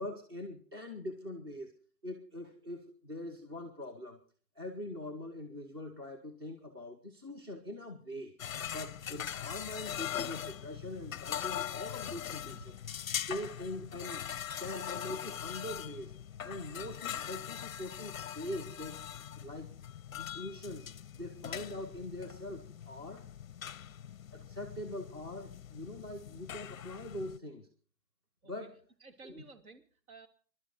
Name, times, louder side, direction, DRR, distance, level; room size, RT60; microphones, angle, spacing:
voice 1, 0.0-1.7 2.0-4.2 4.6-8.4 8.7-12.8 13.3-14.2 14.6-19.0 19.4-19.7 20.1-20.9 21.2-23.2 24.3-27.7 28.5-28.8 29.2-29.4, left 1 dB, 15° right, 6 dB, 0.8 m, -43 dB
sound 1, 8.4-27.4, left 9 dB, 55° left, 0.6 m, -41 dB
voice 2, 29.0-30.3, right 3 dB, 55° right, 7 dB, 2.6 m, -54 dB
22.0 x 12.0 x 3.9 m, 0.42 s
hypercardioid pair, 170°, 49 cm